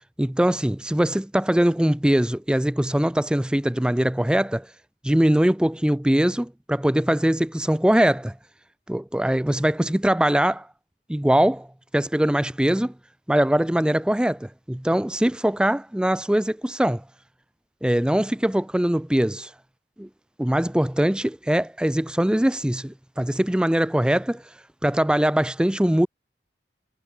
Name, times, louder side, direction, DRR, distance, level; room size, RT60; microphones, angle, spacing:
voice 1, 0.2-4.7 5.0-8.3 8.9-10.7 11.1-11.7 11.9-12.9 13.3-17.0 17.8-19.5 20.0-20.1 20.4-24.4 24.8-26.1, right 1 dB, 5° right, 0.3 m, -22 dB
head